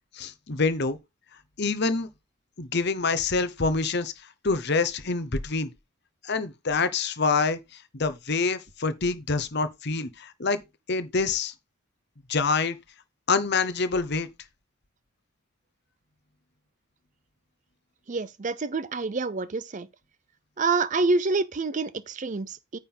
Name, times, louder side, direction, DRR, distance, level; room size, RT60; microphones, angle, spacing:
voice 1, 0.1-1.0 1.6-2.1 2.6-4.1 4.4-5.7 6.2-7.6 7.9-10.6 10.9-11.5 12.3-12.8 13.3-14.3, left 4 dB, 50° left, 0.9 m, -26 dB
voice 2, 18.1-19.9 20.6-22.8, right 3 dB, 35° right, 0.5 m, -27 dB
9.2 x 3.6 x 5.6 m
head